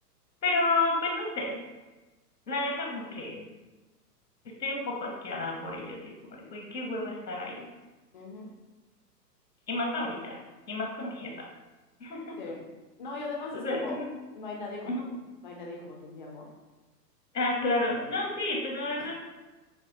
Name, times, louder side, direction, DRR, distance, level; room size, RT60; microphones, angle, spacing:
voice 1, 0.4-1.6 2.5-3.5 4.6-7.7 9.7-10.4 10.7-11.5 12.0-12.4 13.5-14.1 14.9-15.1 17.3-19.1, left 2 dB, 85° left, -1 dB, 1.0 m, -31 dB
voice 2, 8.1-8.5 12.4-12.7 13.0-14.0 14.3-16.5 19.0-19.1, left 3 dB, 30° left, -2 dB, 0.5 m, -39 dB
6.3 x 2.1 x 2.7 m, 1.2 s
figure-of-eight pair, 110°, 49 cm